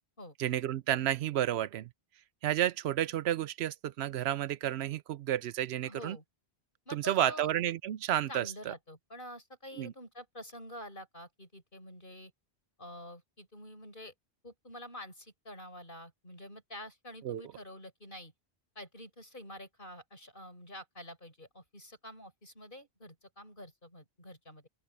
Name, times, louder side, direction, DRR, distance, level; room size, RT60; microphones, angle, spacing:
voice 1, 0.4-1.9 2.4-6.2 6.9-8.7 9.8-9.9 17.2-17.4, right 12 dB, 75° right, 0.8 m, -31 dB
voice 2, 5.8-6.2 6.9-7.5 8.3-12.3 12.8-14.1 14.4-18.3 18.8-24.7, left 1 dB, 50° left, 7.5 m, -48 dB
open air
omnidirectional pair, 1.1 m